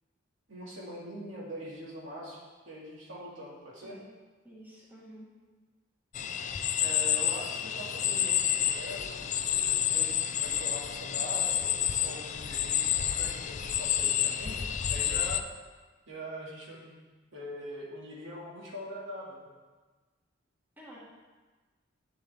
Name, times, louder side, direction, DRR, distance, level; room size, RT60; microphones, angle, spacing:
voice 1, 0.5-2.4 2.7-4.0 6.8-14.6 14.8-15.4 16.1-16.9 17.3-19.5, equal, 90° right, -5 dB, 2.3 m, -43 dB
voice 2, 4.4-5.3 20.8-21.0, equal, 10° right, -6 dB, 1.8 m, -50 dB
sound 1, 6.1-15.4, left 10 dB, 40° left, 0.4 m, -29 dB
10.5 x 6.8 x 3.6 m, 1.3 s
head